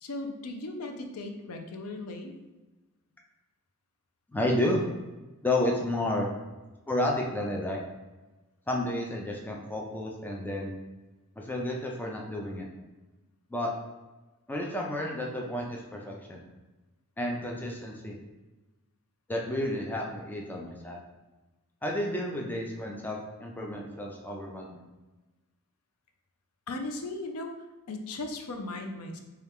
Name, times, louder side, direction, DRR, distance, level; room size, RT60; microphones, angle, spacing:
voice 1, 0.0-2.3 26.7-27.5 27.9-29.2, left 2 dB, 80° left, 4 dB, 0.5 m, -37 dB
voice 2, 4.3-4.8 5.4-6.3 6.9-7.8 8.7-10.8 11.4-12.7 13.5-13.7 14.5-16.5 17.2-18.2 19.3-21.0 21.8-24.8, left 1 dB, 10° left, -1 dB, 0.3 m, -31 dB
4.3 x 2.3 x 3.5 m, 1.1 s
head